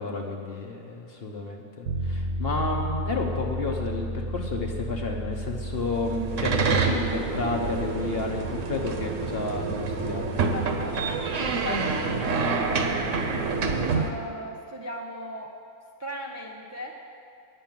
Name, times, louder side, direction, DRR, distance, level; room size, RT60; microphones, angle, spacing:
voice 1, 0.0-10.6, left 3 dB, 45° left, 1 dB, 1.0 m, -31 dB
sound 1, 1.8-13.7, equal, 85° right, 1.7 m, -35 dB
sound 2, 5.8-14.1, right 4 dB, 55° right, 1.1 m, -27 dB
voice 2, 10.5-11.2 11.4-13.1 13.9-15.5 16.0-17.0, equal, 20° right, -1 dB, 0.4 m, -38 dB
9.5 x 6.8 x 9.0 m, 2.4 s
omnidirectional pair, 1.7 m